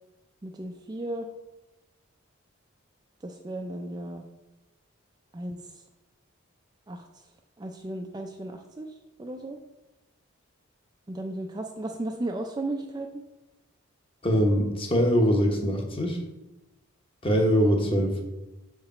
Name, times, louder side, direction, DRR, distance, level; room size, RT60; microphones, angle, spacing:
voice 1, 0.4-1.3 3.2-4.2 5.3-5.6 6.9-7.1 7.6-8.9 9.2-9.6 11.1-13.2, right 1 dB, 20° right, 3 dB, 0.3 m, -35 dB
voice 2, 14.2-16.2 17.2-18.2, equal, 25° left, 2 dB, 0.9 m, -23 dB
6.5 x 4.8 x 4.2 m, 0.99 s
head